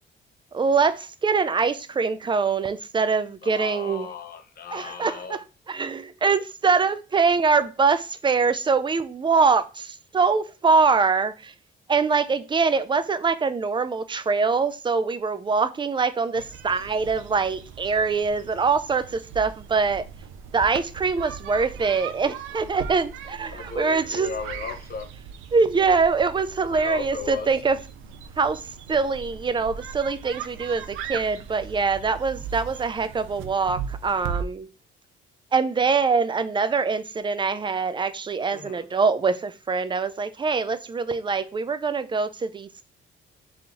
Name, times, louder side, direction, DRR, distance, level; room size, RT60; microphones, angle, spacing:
voice 1, 0.5-4.1 4.7-11.5 11.9-20.0 20.5-24.3 25.5-27.8 28.4-34.7 35.5-42.7, right 4 dB, 25° right, 0.4 m, -23 dB
voice 2, 3.4-5.4 23.5-25.1 26.7-27.5 38.5-38.9, left 5 dB, 50° left, 0.8 m, -35 dB
sound 1, 16.3-34.4, right 7 dB, 90° right, 0.5 m, -38 dB
3.8 x 3.0 x 3.7 m
cardioid pair, 90°, 20 cm